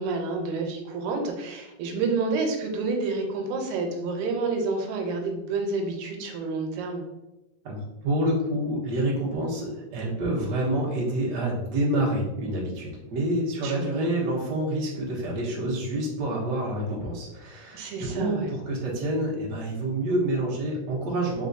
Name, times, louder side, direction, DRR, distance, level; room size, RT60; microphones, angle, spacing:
voice 1, 0.0-7.0 13.6-14.1 17.7-18.5, right 3 dB, 90° right, 3 dB, 2.0 m, -29 dB
voice 2, 7.6-21.5, right 1 dB, 60° right, -4 dB, 1.1 m, -28 dB
4.4 x 3.6 x 2.6 m, 1.0 s
omnidirectional pair, 3.4 m